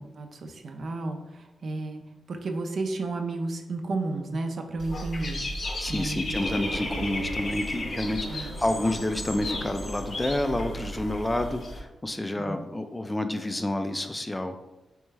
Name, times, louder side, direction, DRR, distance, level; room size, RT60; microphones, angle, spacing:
voice 1, 0.0-2.0 2.3-5.4 5.8-6.4 8.2-8.5 12.4-12.6, right 2 dB, 60° right, 5 dB, 0.5 m, -32 dB
Dog / Bird, 4.8-11.8, left 1 dB, 50° left, 0.6 m, -34 dB
voice 2, 5.8-14.6, left 1 dB, 15° left, 7 dB, 0.3 m, -29 dB
sound 1, 6.3-11.9, right 2 dB, 80° right, 0.9 m, -40 dB
3.4 x 3.2 x 3.2 m, 1.0 s
cardioid pair, 85°, 0 cm